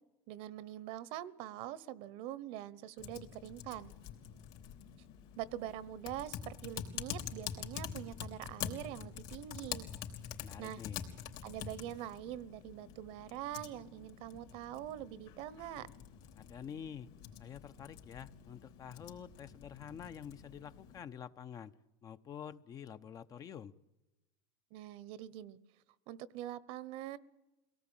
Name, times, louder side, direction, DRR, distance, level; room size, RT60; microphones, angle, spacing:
voice 1, 0.3-3.9 5.4-9.9 10.6-10.8 11.4-15.9 24.7-25.6 26.1-27.2, right 12 dB, 60° right, 20 dB, 1.1 m, -44 dB
Typing, 3.0-21.0, left 9 dB, 60° left, 3.6 m, -47 dB
voice 2, 10.4-11.0 16.4-17.1 17.4-21.7 22.0-23.7, left 8 dB, 35° left, 12 dB, 0.9 m, -48 dB
23.5 x 18.0 x 9.0 m, 0.99 s
supercardioid pair, 130°, 11 cm